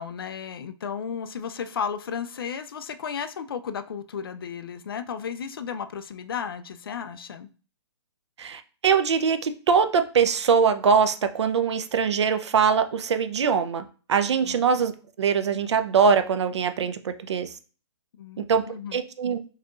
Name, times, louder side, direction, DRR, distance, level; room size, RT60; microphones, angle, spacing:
voice 1, 0.0-7.5 14.4-14.6 18.2-19.0, left 7 dB, 50° left, 0.4 m, -34 dB
voice 2, 8.4-14.9 15.2-17.5 18.4-18.6 18.9-19.4, right 6 dB, 70° right, 0.5 m, -22 dB
4.7 x 2.9 x 2.3 m
hypercardioid pair, 175°, 15 cm